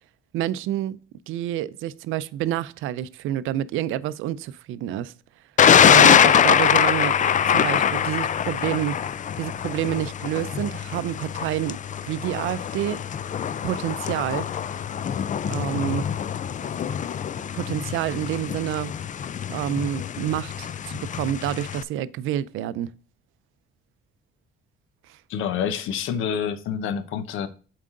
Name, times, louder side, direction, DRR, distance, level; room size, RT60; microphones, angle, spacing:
voice 1, 0.3-1.0 1.3-5.1 5.8-7.1 7.5-9.0 9.4-11.8 12.1-13.0 13.6-14.5 15.5-16.1 17.5-18.9 19.5-22.9 25.1-25.2, right 12 dB, 90° right, 0.5 m, -28 dB
Thunder, 5.6-21.8, left 8 dB, 40° left, 0.4 m, -23 dB
voice 2, 25.3-27.5, left 8 dB, 85° left, 0.9 m, -27 dB
7.5 x 4.7 x 3.7 m
cardioid pair, 90°, 20 cm